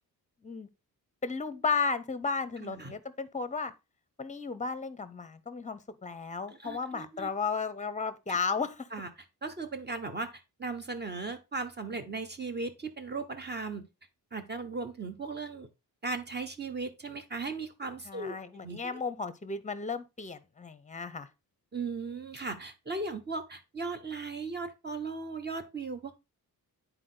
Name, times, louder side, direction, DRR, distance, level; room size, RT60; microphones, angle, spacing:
voice 1, 1.2-3.7 4.2-8.9 18.1-21.3, left 4 dB, 20° left, 0.8 m, -34 dB
voice 2, 2.6-2.9 6.5-7.3 8.3-8.4 8.9-9.1 9.4-13.9 14.3-15.7 16.0-18.4 18.6-19.0 21.7-26.2, right 3 dB, 25° right, 1.3 m, -37 dB
9.8 x 4.6 x 3.8 m
cardioid pair, 115°, 38 cm